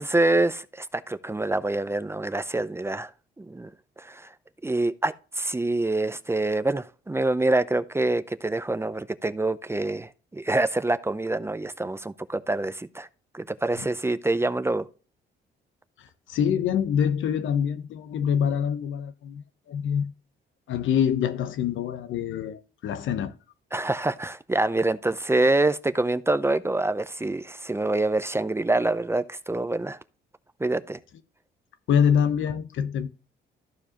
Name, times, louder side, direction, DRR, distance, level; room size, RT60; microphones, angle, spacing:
voice 1, 0.0-3.1 3.4-3.7 4.0-4.3 4.6-13.1 13.3-14.9 23.7-30.0 30.6-31.0, right 2 dB, 10° right, 0.6 m, -26 dB
voice 2, 16.3-19.4 19.7-20.1 20.7-23.3 31.9-33.1, left 8 dB, 75° left, 1.0 m, -25 dB
14.0 x 4.8 x 2.9 m
cardioid pair, 90°, 20 cm